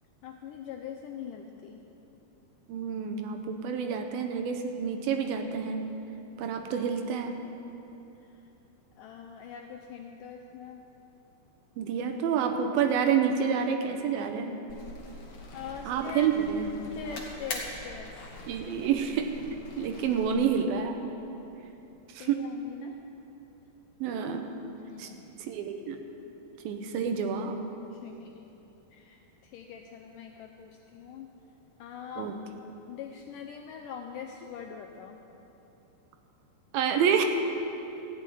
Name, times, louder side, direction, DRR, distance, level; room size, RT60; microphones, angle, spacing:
voice 1, 0.2-1.8 8.3-8.4 9.0-10.8 15.5-16.3 16.9-18.2 18.8-18.9 22.2-23.0 24.8-25.3 27.9-28.5 28.9-31.3 31.8-32.3 32.9-35.2, left 7 dB, 85° left, 3 dB, 1.9 m, -43 dB
voice 2, 2.7-5.9 6.4-7.4 11.8-14.6 15.9-16.7 18.5-19.3 19.8-21.0 22.1-22.4 24.0-24.5 25.0-25.1 25.4-26.0 26.6-27.6 32.2-32.4 36.7-37.3, right 7 dB, 80° right, 5 dB, 2.5 m, -28 dB
sound 1, 14.7-20.6, left 2 dB, 65° left, 1.2 m, -43 dB
14.5 x 6.4 x 9.3 m, 2.9 s
omnidirectional pair, 4.4 m